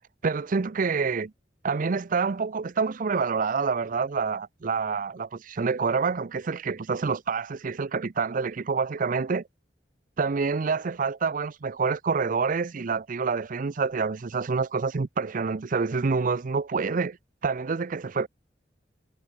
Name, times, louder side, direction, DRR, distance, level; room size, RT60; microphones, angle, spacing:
voice 1, 0.2-1.3 1.6-9.4 10.2-17.2 17.4-18.3, right 5 dB, 50° right, 0.5 m, -27 dB
head